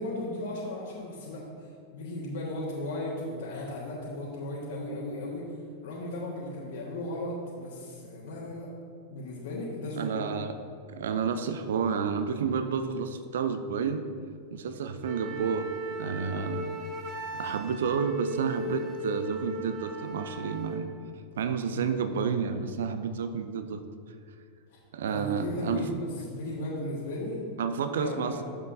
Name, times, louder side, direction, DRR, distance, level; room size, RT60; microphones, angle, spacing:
voice 1, 0.0-1.4 1.9-5.4 5.8-8.7 9.1-10.2 24.7-24.8 25.0-27.5 27.9-28.4, left 1 dB, 60° left, -7 dB, 1.5 m, -36 dB
voice 2, 10.0-10.6 10.9-14.0 14.5-15.7 16.0-16.7 17.3-20.9 21.4-23.8 24.9-25.9 27.6-28.4, right 6 dB, 60° right, 9 dB, 0.5 m, -30 dB
Wind instrument woodwind instrument, 15.0-20.8, right 1 dB, 30° right, 1.0 m, -37 dB
11.5 x 7.3 x 2.7 m, 2.2 s
figure-of-eight pair, 90°, 0 cm